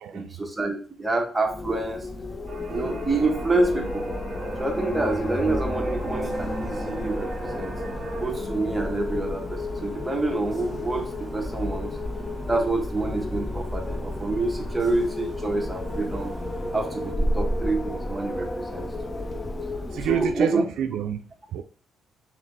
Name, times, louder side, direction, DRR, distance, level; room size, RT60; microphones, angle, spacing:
voice 1, 0.1-2.1 2.7-4.1 4.6-7.8 8.2-11.9 12.5-16.3 16.7-19.2 20.0-20.6, right 2 dB, 15° right, 1.0 m, -27 dB
Wind, 1.4-20.5, left 1 dB, 30° left, 0.6 m, -32 dB
sound 1, 2.5-8.3, right 3 dB, 45° right, 1.0 m, -42 dB
sound 2, 6.0-17.1, equal, 10° left, 1.4 m, -41 dB
voice 2, 19.9-21.6, right 9 dB, 75° right, 0.3 m, -28 dB
3.3 x 2.9 x 3.8 m
cardioid pair, 90°, 0 cm